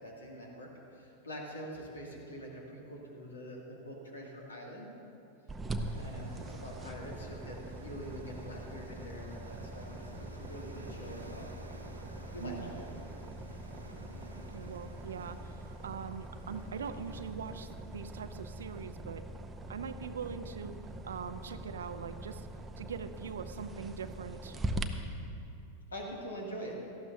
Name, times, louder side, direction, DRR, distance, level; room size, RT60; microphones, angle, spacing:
voice 1, 0.0-4.9 6.0-10.0 10.3-11.5 12.3-12.9 25.9-26.8, equal, 70° left, -1 dB, 2.3 m, -44 dB
sound 1, 5.5-24.9, right 1 dB, 15° right, 0.8 m, -43 dB
sound 2, 5.8-18.9, right 1 dB, 85° right, 1.0 m, -54 dB
voice 2, 12.4-12.8 14.3-19.3 19.7-20.7 21.0-22.5 22.8-24.6, right 6 dB, 65° right, 10 dB, 0.6 m, -42 dB
18.0 x 14.0 x 2.7 m, 2.7 s
figure-of-eight pair, 90°, 0 cm